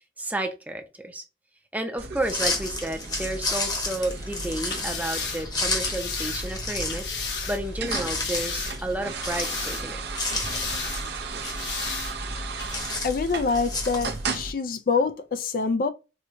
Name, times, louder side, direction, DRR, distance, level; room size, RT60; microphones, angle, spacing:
voice 1, 0.2-1.2 1.7-7.1 7.5-10.0, right 1 dB, 10° right, 0.5 m, -31 dB
sound 1, 2.0-14.5, right 3 dB, 65° right, 0.6 m, -35 dB
sound 2, 2.2-14.4, left 2 dB, 25° left, 0.9 m, -33 dB
sound 3, 4.7-7.6 8.1-8.9 9.2-10.0 10.3-11.0 11.4-12.1 12.6-12.7, left 5 dB, 80° left, 1.2 m, -34 dB
voice 2, 13.0-15.9, left 4 dB, 50° left, 0.4 m, -25 dB
4.4 x 2.2 x 2.6 m
head